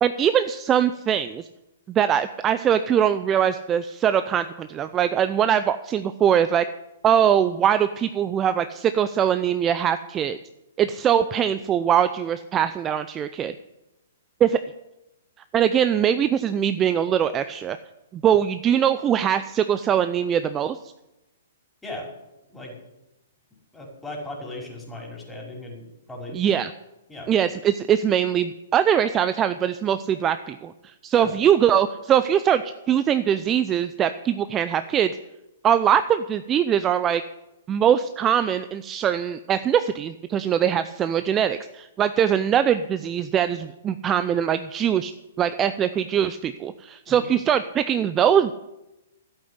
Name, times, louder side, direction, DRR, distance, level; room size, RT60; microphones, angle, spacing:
voice 1, 0.0-1.4 1.9-6.6 7.0-10.4 10.8-13.5 14.4-14.6 15.5-17.8 18.1-20.8 26.3-26.7 27.3-30.7 31.0-32.6 32.9-35.1 35.6-37.2 37.7-45.1 45.4-48.5, right 9 dB, 20° right, 11 dB, 0.5 m, -22 dB
voice 2, 23.7-26.4 27.1-27.3 31.1-31.3 47.1-47.3, left 1 dB, 5° left, -2 dB, 5.2 m, -37 dB
12.5 x 8.5 x 9.6 m, 0.94 s
figure-of-eight pair, 115°, 0 cm